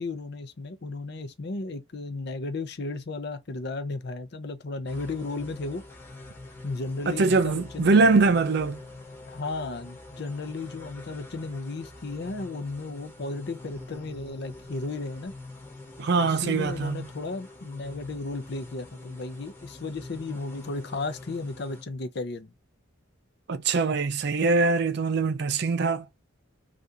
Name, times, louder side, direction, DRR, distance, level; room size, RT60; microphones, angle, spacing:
voice 1, 0.0-5.8 6.6-8.1 9.3-15.3 16.2-22.5, left 3 dB, 50° left, 0.6 m, -34 dB
sound 1, 4.9-21.8, left 2 dB, 10° left, 1.0 m, -45 dB
voice 2, 7.1-8.8 16.0-17.1 23.5-26.1, right 4 dB, 50° right, 0.4 m, -23 dB
2.8 x 2.5 x 3.5 m
head